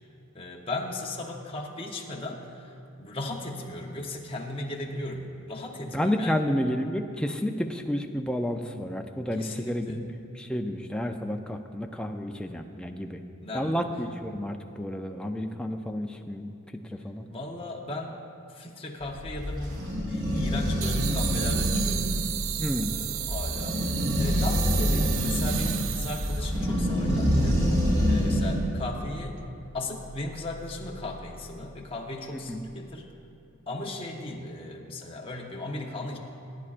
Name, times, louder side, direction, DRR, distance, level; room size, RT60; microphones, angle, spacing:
voice 1, 0.3-2.7 3.0-6.4 9.4-10.0 13.4-13.8 17.3-18.1 18.4-22.2 22.8-23.9 24.2-27.6 28.1-29.4 29.7-33.1 33.7-36.2, left 2 dB, 25° left, 0 dB, 0.9 m, -36 dB
voice 2, 5.9-10.1 10.3-13.2 13.5-16.5 16.9-17.3 22.6-23.0 32.3-32.6, equal, 5° left, 4 dB, 0.4 m, -30 dB
sound 1, 19.0-28.7, equal, 80° right, 2.9 m, -26 dB
sound 2, 20.8-26.6, right 12 dB, 65° right, 0.3 m, -33 dB
sound 3, 31.7-32.6, equal, 50° right, 1.3 m, -40 dB
18.5 x 9.8 x 2.5 m, 2.7 s
head